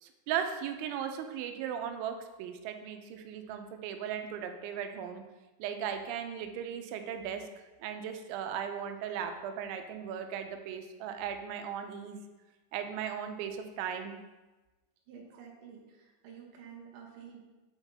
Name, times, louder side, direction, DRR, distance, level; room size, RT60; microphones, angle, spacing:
voice 1, 0.0-5.2 5.6-7.5 7.8-12.2 12.7-14.2, right 8 dB, 85° right, 6 dB, 3.0 m, -37 dB
voice 2, 15.1-17.4, right 7 dB, 70° right, -1 dB, 2.0 m, -50 dB
8.0 x 5.6 x 3.4 m, 1.1 s
omnidirectional pair, 5.3 m